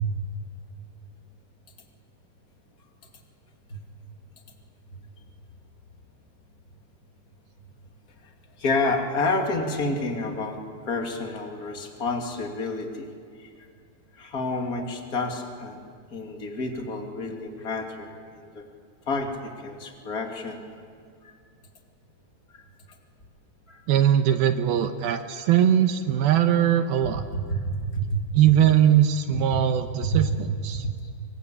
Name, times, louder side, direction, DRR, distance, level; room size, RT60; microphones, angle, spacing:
voice 1, 8.6-13.1 13.4-13.5 14.1-18.7 19.1-20.6 21.2-21.4 22.5-22.6 23.7-23.8 27.5-28.2 30.0-30.2 30.8-31.1, left 2 dB, 25° left, 2 dB, 2.4 m, -29 dB
voice 2, 23.9-27.2 28.3-30.9, right 10 dB, 75° right, 8 dB, 2.6 m, -21 dB
25.5 x 24.0 x 8.8 m, 2.2 s
omnidirectional pair, 4.6 m